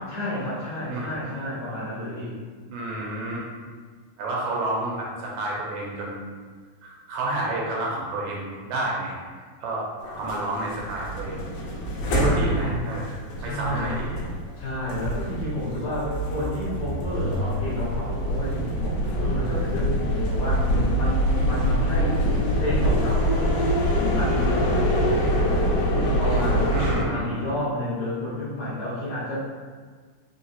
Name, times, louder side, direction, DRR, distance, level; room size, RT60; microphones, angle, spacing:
voice 1, 0.1-2.4 12.4-12.9 13.4-13.9 14.6-22.2 22.5-26.7 27.1-29.4, left 1 dB, 60° left, -10 dB, 2.1 m, -31 dB
voice 2, 2.7-3.4 4.2-6.2 6.8-9.2 9.6-9.8 10.2-11.5 12.1-14.2 26.7-27.4, right 2 dB, 80° right, -3 dB, 2.2 m, -30 dB
sound 1, 10.0-27.0, equal, 80° left, 2.0 m, -25 dB
5.2 x 2.8 x 2.7 m, 1.5 s
omnidirectional pair, 4.1 m